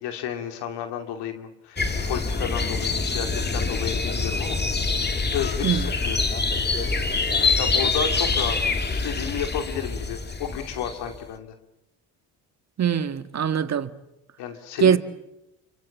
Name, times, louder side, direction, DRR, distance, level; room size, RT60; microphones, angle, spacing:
voice 1, 0.0-4.6 5.3-6.3 7.5-11.5 14.4-15.0, left 9 dB, 90° left, 2.8 m, -32 dB
sound 1, 1.8-11.2, left 4 dB, 25° left, 2.4 m, -25 dB
voice 2, 12.8-13.9 14.8-15.0, right 7 dB, 40° right, 1.7 m, -21 dB
29.0 x 24.0 x 7.3 m
cardioid pair, 95°, 40 cm